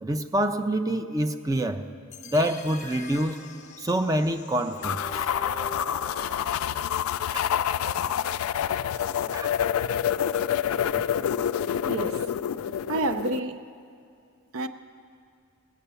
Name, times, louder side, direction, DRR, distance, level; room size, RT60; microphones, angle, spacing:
voice 1, 0.0-1.9 2.2-3.4 3.8-5.0 7.3-7.4 9.3-9.5, right 1 dB, 15° right, 0.5 m, -26 dB
sound 1, 2.1-8.1, left 2 dB, 35° left, 0.7 m, -43 dB
sound 2, 4.8-13.4, left 9 dB, 85° left, 0.3 m, -27 dB
voice 2, 11.9-12.3 12.7-13.7 14.5-14.7, right 2 dB, 85° right, 0.6 m, -29 dB
17.0 x 9.1 x 6.9 m
head